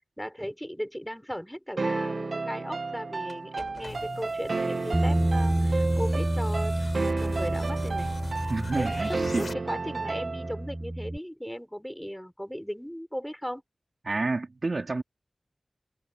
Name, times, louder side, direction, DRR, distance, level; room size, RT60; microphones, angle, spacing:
voice 1, 0.2-8.1 8.7-13.6, equal, 5° left, 5.9 m, -37 dB
sound 1, 1.8-10.7, right 3 dB, 75° right, 1.1 m, -32 dB
sound 2, 3.3-9.5, left 3 dB, 70° left, 5.4 m, -41 dB
Bass guitar, 4.9-11.2, right 1 dB, 20° right, 0.9 m, -29 dB
voice 2, 8.5-9.5 14.0-15.0, right 3 dB, 60° right, 3.9 m, -29 dB
wide cardioid pair, 65°, 0 cm